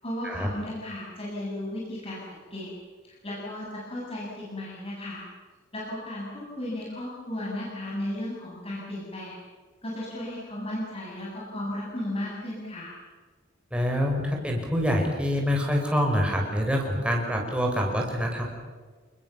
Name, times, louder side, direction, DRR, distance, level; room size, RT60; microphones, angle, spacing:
voice 1, 0.0-2.7 3.0-5.2 5.7-9.4 9.8-12.9, left 1 dB, 30° left, -5 dB, 7.3 m, -35 dB
voice 2, 13.7-18.5, equal, 5° right, 0 dB, 5.6 m, -26 dB
29.5 x 21.0 x 7.2 m, 1.4 s
head